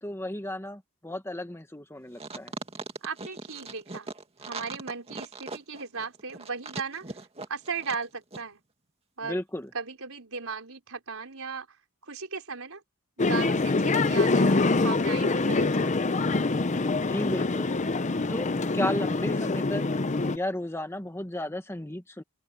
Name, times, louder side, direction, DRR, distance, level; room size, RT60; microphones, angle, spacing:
voice 1, 0.0-2.5 9.2-9.7 17.0-17.7 18.3-19.8 20.2-22.2, left 1 dB, 10° left, 1.5 m, -34 dB
dhunhero cartoonstretch rubbingmiccover, 2.2-8.1 8.3-8.4, right 3 dB, 30° right, 2.1 m, -39 dB
voice 2, 3.0-4.1 4.4-7.2 7.5-8.6 9.2-9.4 9.7-11.8 12.0-12.8 13.2-16.3, right 5 dB, 65° right, 5.4 m, -37 dB
sound 1, 13.2-20.4, left 3 dB, 35° left, 0.7 m, -25 dB
open air
head